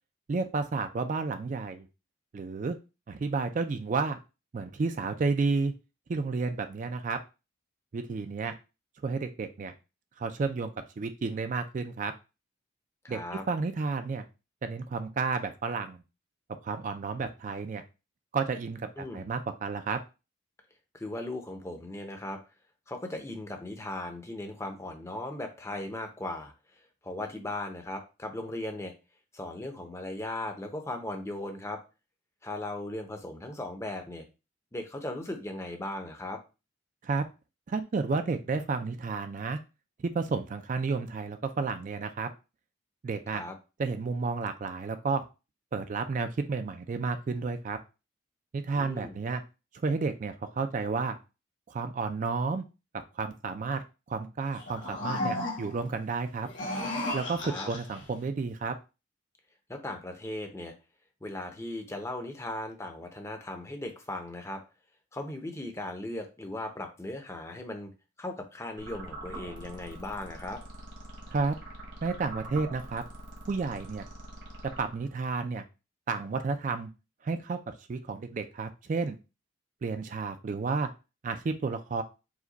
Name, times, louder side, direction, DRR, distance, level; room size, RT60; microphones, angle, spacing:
voice 1, 0.3-1.9 2.3-2.8 3.1-4.2 4.5-5.7 6.1-7.2 7.9-8.5 9.0-9.7 10.2-12.1 13.1-13.2 13.5-14.2 14.6-16.0 16.6-17.8 18.3-20.0 37.0-37.2 37.7-39.6 40.0-42.3 43.0-43.4 43.8-45.2 45.7-47.8 48.5-49.4 49.8-51.2 51.7-52.6 53.2-56.5 57.1-57.4 57.7-58.7 71.3-71.5 72.0-73.0 73.5-74.1 74.8-75.6 76.1-76.9 77.2-77.6 77.9-79.2 79.8-80.9 81.2-82.0, right 4 dB, 40° right, 8 dB, 0.3 m, -31 dB
voice 2, 13.0-13.4 19.0-19.3 20.9-22.4 22.9-28.9 29.3-31.8 32.4-34.2 34.7-36.4 43.3-43.6 48.8-49.2 57.4-57.7 59.7-60.7 61.2-64.6 65.1-67.9 68.2-70.6, left 1 dB, 15° left, 5 dB, 0.6 m, -38 dB
sound 1, 54.5-55.9 56.4-58.0, left 1 dB, 60° left, 1.4 m, -34 dB
sound 2, 68.8-75.3, right 1 dB, 65° right, 1.2 m, -44 dB
4.8 x 2.2 x 3.9 m, 0.29 s
head